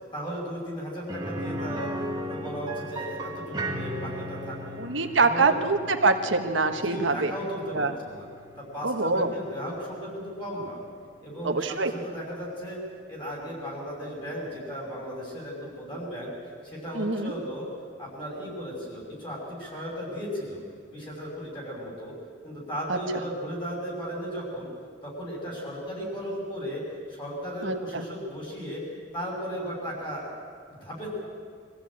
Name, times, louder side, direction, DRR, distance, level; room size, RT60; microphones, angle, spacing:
voice 1, 0.1-4.8 5.2-5.6 6.7-8.3 8.6-10.8 11.2-12.8 13.1-16.3 16.6-17.7 18.0-20.6 20.9-22.1 22.4-24.7 25.0-26.8 27.1-28.8 29.1-30.3 30.7-31.1, equal, 25° left, -2 dB, 6.1 m, -35 dB
sound 1, 1.1-10.9 11.2-11.3 13.7-13.8, equal, 20° right, 1.7 m, -37 dB
voice 2, 4.8-7.3 7.7-7.9 8.8-9.3 11.4-11.9 17.0-17.3 22.9-23.0 27.6-28.0, right 3 dB, 75° right, 5 dB, 1.4 m, -24 dB
23.5 x 15.5 x 8.7 m, 2.1 s
head